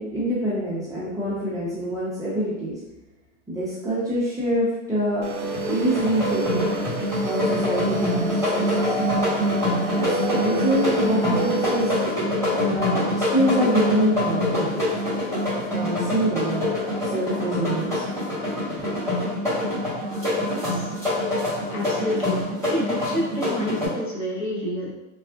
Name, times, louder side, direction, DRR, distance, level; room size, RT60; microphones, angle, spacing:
voice 1, 0.0-2.8 3.5-5.3 5.7-6.7 7.2-9.0 9.9-11.9 12.5-14.8 15.7-16.6 17.0-18.1 18.7-18.8, right 1 dB, 10° right, -10 dB, 0.6 m, -25 dB
sound 1, 5.2-12.1, right 3 dB, 55° right, 0.6 m, -30 dB
sound 2, 5.4-23.9, left 1 dB, 10° left, 1.4 m, -25 dB
voice 2, 20.4-20.9 21.7-22.4 22.7-24.9, equal, 35° left, -5 dB, 1.0 m, -29 dB
3.6 x 2.3 x 2.3 m, 0.96 s
supercardioid pair, 140°, 37 cm